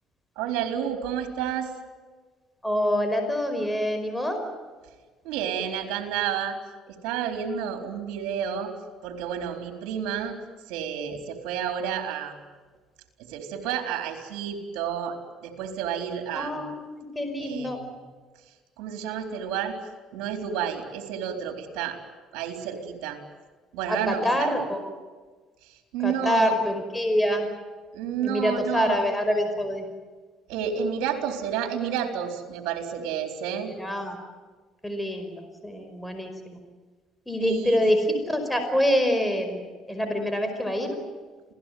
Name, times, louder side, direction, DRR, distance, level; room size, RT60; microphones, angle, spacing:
voice 1, 0.4-1.7 5.2-6.6 6.9-8.7 9.0-10.4 10.7-12.3 13.3-15.2 15.4-16.6 17.4-17.9 18.8-19.7 20.1-22.0 22.3-23.2 23.7-24.6 25.9-26.5 27.9-29.0 30.5-33.7 37.4-37.9, right 8 dB, 85° right, 5 dB, 4.1 m, -30 dB
voice 2, 2.6-4.4 16.4-17.8 23.9-24.9 26.0-27.5 28.2-29.8 33.8-34.2 34.8-36.6 37.3-39.6 39.9-41.0, equal, 5° left, 6 dB, 5.2 m, -26 dB
27.5 x 18.5 x 9.5 m, 1.4 s
supercardioid pair, 90°, 0 cm